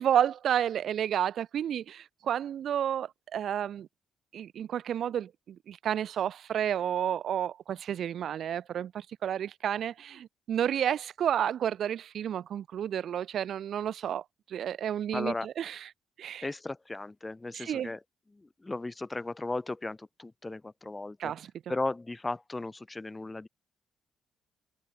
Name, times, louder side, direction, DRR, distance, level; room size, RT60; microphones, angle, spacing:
voice 1, 0.0-3.9 4.3-15.9 16.2-16.5 17.5-17.9 21.2-21.5, right 9 dB, 65° right, 1.3 m, -31 dB
voice 2, 15.1-15.5 16.4-18.0 18.3-21.3 21.7-23.5, left 2 dB, 15° left, 3.2 m, -36 dB
cardioid pair, 90°, 0 cm